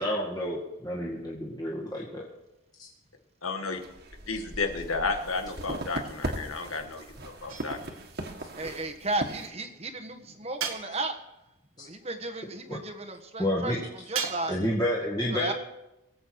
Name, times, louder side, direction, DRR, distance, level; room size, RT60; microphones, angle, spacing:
voice 1, 0.0-2.3 2.8-2.9 11.8-11.9 12.7-12.8 13.4-13.8 14.5-15.5, left 1 dB, 20° left, -4 dB, 2.0 m, -29 dB
voice 2, 3.4-3.8 4.3-7.8, left 3 dB, 85° left, 5 dB, 1.8 m, -32 dB
sound 1, 3.8-9.5, right 1 dB, 50° right, 1.8 m, -38 dB
sound 2, 7.5-8.1 10.6-11.4 14.1-14.8, right 7 dB, 85° right, 1.7 m, -36 dB
voice 3, 8.6-11.2 11.8-14.6 15.3-15.5, right 2 dB, 30° right, 7 dB, 1.3 m, -34 dB
22.5 x 8.2 x 4.7 m, 0.89 s
head